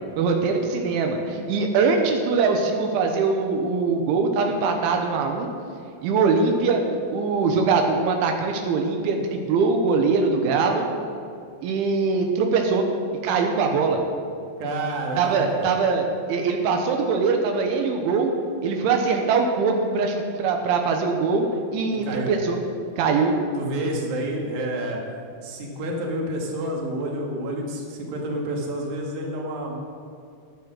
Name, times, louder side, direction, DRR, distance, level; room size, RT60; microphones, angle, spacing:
voice 1, 0.2-5.5 6.0-6.8 7.1-10.9 11.6-12.8 13.2-14.0 15.2-18.3 18.6-21.5 21.7-22.6 23.0-23.3, right 4 dB, 90° right, 3 dB, 3.4 m, -22 dB
voice 2, 14.6-15.6 22.0-22.3 23.6-25.0 25.4-29.8, right 1 dB, 60° right, -1 dB, 3.2 m, -29 dB
12.5 x 9.3 x 6.3 m, 2.4 s
omnidirectional pair, 5.4 m